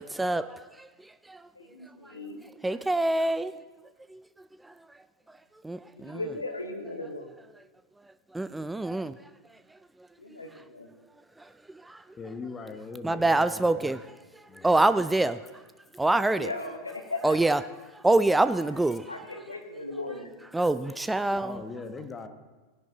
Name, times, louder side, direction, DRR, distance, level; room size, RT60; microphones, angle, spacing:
voice 1, 0.0-1.5 2.0-2.2 2.6-3.5 4.1-5.0 5.3-5.4 5.6-6.2 8.0-9.1 9.5-10.4 11.4-12.2 13.0-14.0 14.4-15.6 15.9-16.5 17.2-19.1 20.5-21.6, right 2 dB, 5° right, 0.3 m, -27 dB
voice 2, 1.5-2.4 5.9-7.3 10.2-10.9 16.4-17.4 19.1-20.3, left 2 dB, 85° left, 1.2 m, -37 dB
voice 3, 12.2-14.0 14.5-14.8 21.4-22.3, left 4 dB, 20° left, 1.0 m, -40 dB
17.0 x 10.5 x 2.9 m
figure-of-eight pair, 90°, 0 cm